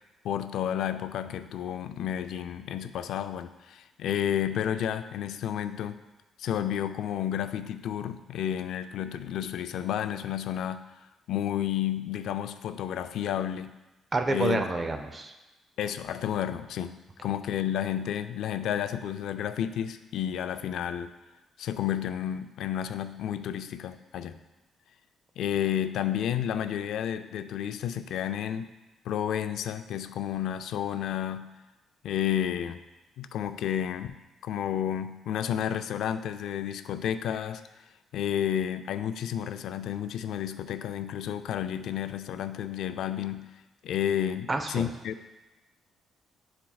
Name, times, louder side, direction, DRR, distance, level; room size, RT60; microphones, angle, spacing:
voice 1, 0.2-6.0 6.4-10.9 11.3-13.8 14.3-14.6 15.8-17.0 17.2-21.1 21.6-24.4 25.4-28.7 29.0-31.5 32.0-32.8 33.2-37.6 38.1-43.5 43.8-45.2, left 10 dB, 75° left, 11 dB, 0.3 m, -31 dB
voice 2, 14.1-15.3 44.5-44.9, right 3 dB, 30° right, 5 dB, 0.6 m, -28 dB
10.0 x 4.3 x 2.3 m, 1.1 s
cardioid pair, 90°, 0 cm